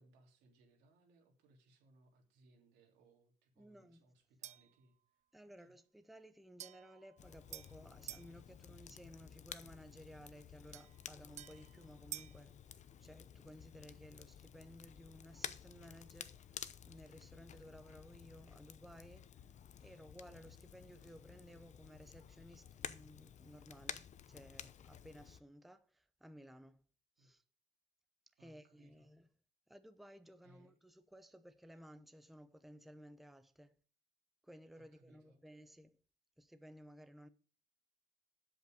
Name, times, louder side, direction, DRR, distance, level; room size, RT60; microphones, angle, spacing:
voice 1, 0.0-5.7 27.2-27.3 28.4-29.1 30.4-30.7 31.7-31.8 34.7-35.4, right 2 dB, 90° right, 3.1 m, -68 dB
voice 2, 3.6-4.1 5.3-19.5 19.8-26.8 27.2-27.4 28.4-29.3 29.7-33.8 34.4-36.0 36.4-37.3, equal, ahead, 0.7 m, -57 dB
sound 1, 4.4-4.8 6.6-8.3 10.7-12.4, right 11 dB, 45° right, 0.4 m, -51 dB
Crackle, 7.2-25.4, left 9 dB, 45° left, 0.7 m, -53 dB
7.9 x 7.8 x 6.4 m
cardioid pair, 110°, 17 cm